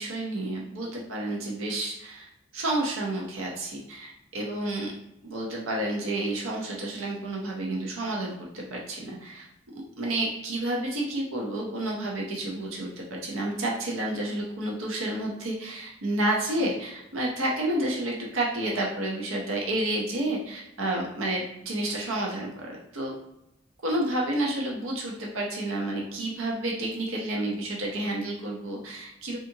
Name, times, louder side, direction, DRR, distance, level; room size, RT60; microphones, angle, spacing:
voice 1, 0.0-4.9 5.2-9.5 10.0-23.1 23.8-29.4, right 1 dB, 85° right, -2 dB, 0.6 m, -30 dB
2.7 x 2.4 x 2.6 m, 0.85 s
head